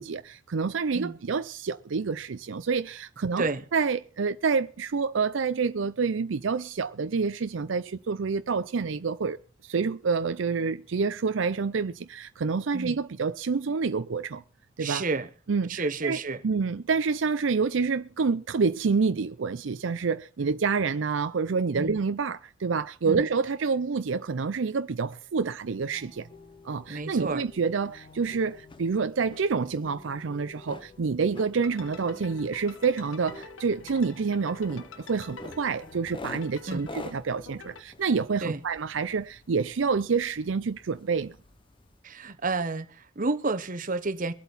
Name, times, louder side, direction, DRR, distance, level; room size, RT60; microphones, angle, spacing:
voice 1, 0.0-3.4 3.7-9.4 9.6-14.4 14.8-15.0 15.5-16.2 16.4-26.3 26.6-41.4, right 5 dB, 75° right, 0.5 m, -28 dB
voice 2, 14.8-15.3 15.7-16.4 20.4-20.5 21.8-22.0 23.1-23.2 26.9-27.4 36.7-36.9 38.4-38.6 42.0-44.3, right 3 dB, 45° right, 1.0 m, -30 dB
sound 1, 25.6-42.1, left 2 dB, 25° left, 0.9 m, -49 dB
sound 2, 25.9-36.1, left 4 dB, 45° left, 2.2 m, -52 dB
sound 3, 31.5-37.8, left 3 dB, 85° left, 1.1 m, -48 dB
23.5 x 8.1 x 4.1 m
head